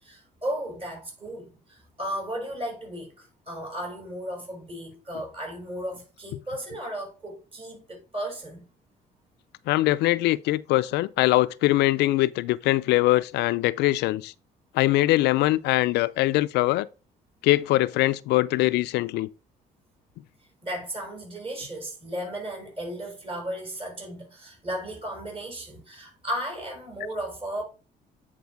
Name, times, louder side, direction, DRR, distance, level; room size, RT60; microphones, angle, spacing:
voice 1, 0.0-8.6 20.6-27.6, right 1 dB, 35° right, 4.8 m, -35 dB
voice 2, 9.7-14.3 14.7-16.9 17.4-19.3, left 17 dB, 80° left, 0.4 m, -22 dB
9.4 x 4.5 x 4.6 m
cardioid pair, 110°, 17 cm